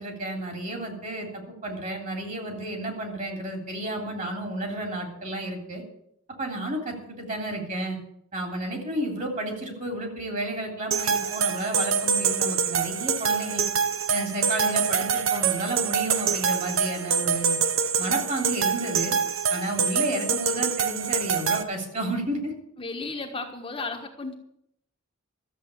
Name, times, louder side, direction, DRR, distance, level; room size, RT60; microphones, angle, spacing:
voice 1, 0.0-5.8 6.4-8.0 8.3-13.6 14.1-17.6 18.0-19.2 19.5-22.5, right 1 dB, 40° right, 3 dB, 3.4 m, -31 dB
sound 1, 10.9-21.6, right 6 dB, 75° right, 0.9 m, -25 dB
voice 2, 22.8-24.3, left 3 dB, 25° left, 1 dB, 1.4 m, -34 dB
13.5 x 7.7 x 8.5 m, 0.72 s
head